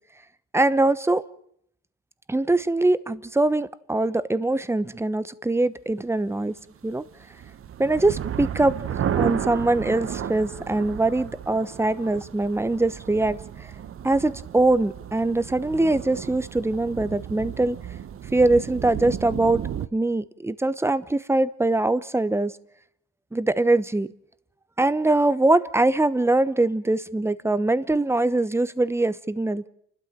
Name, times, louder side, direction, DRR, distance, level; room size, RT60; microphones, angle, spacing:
voice 1, 0.5-1.2 2.3-6.5 6.8-7.0 7.8-8.8 9.1-13.7 14.0-17.8 18.3-19.6 19.9-22.5 23.3-24.1 24.8-29.6, right 2 dB, 10° right, 15 dB, 1.0 m, -22 dB
sound 1, 7.1-19.9, right 9 dB, 45° right, 0.9 m, -33 dB
29.5 x 12.5 x 7.3 m, 0.70 s
cardioid pair, 100°, 32 cm